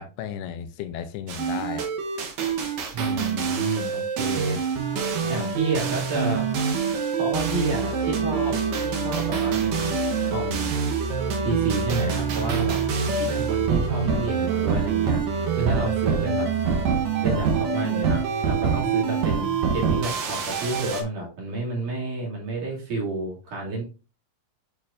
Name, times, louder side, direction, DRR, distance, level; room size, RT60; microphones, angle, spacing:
voice 1, 0.0-1.9 5.2-5.5, left 9 dB, 85° left, 2.6 m, -34 dB
sound 1, 1.3-21.0, right 6 dB, 75° right, 1.6 m, -25 dB
voice 2, 2.9-4.6 5.3-6.5 7.2-8.6 8.8-10.0 10.2-10.7 11.4-12.8 13.1-15.2 15.5-16.5 17.2-23.8, right 2 dB, 55° right, 3.7 m, -30 dB
8.7 x 4.7 x 2.5 m
omnidirectional pair, 4.6 m